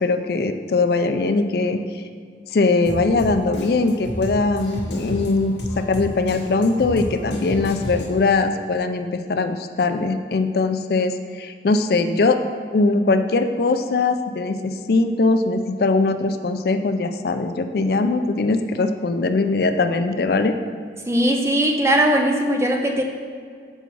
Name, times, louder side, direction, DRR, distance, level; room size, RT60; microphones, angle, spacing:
voice 1, 0.0-2.0 2.5-12.4 12.7-20.5, left 3 dB, 60° left, 8 dB, 0.4 m, -21 dB
Drum kit, 2.8-8.3, equal, 80° left, 1.1 m, -32 dB
voice 2, 21.1-23.0, right 1 dB, 15° right, 2 dB, 0.5 m, -19 dB
5.5 x 4.6 x 6.0 m, 2.1 s
head